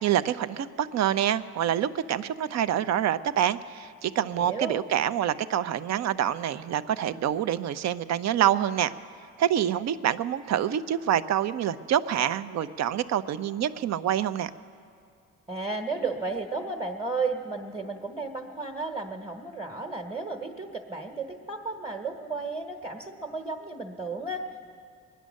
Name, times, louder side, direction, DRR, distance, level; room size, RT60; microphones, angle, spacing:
voice 1, 0.0-8.9 9.4-14.5, right 10 dB, 60° right, 14 dB, 0.6 m, -26 dB
voice 2, 4.3-4.8 15.5-24.7, right 3 dB, 15° right, 2 dB, 1.2 m, -33 dB
21.5 x 10.0 x 6.4 m, 2.4 s
cardioid pair, 90°, 30 cm